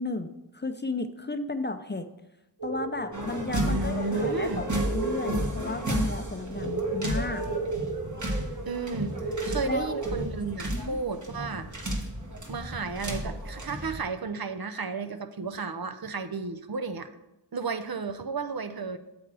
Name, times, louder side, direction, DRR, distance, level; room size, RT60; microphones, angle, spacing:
voice 1, 0.0-2.1 2.6-7.5 9.6-10.0 10.7-11.0, left 3 dB, 25° left, 9 dB, 0.5 m, -34 dB
sound 1, 2.6-10.2, right 3 dB, 85° right, 1.9 m, -35 dB
sound 2, 3.1-14.0, right 1 dB, 45° right, 1.5 m, -33 dB
voice 2, 3.6-4.7 8.7-11.7 12.5-17.1 17.5-19.0, right 4 dB, 60° right, 9 dB, 0.6 m, -33 dB
8.0 x 7.8 x 3.4 m, 0.94 s
wide cardioid pair, 45°, 42 cm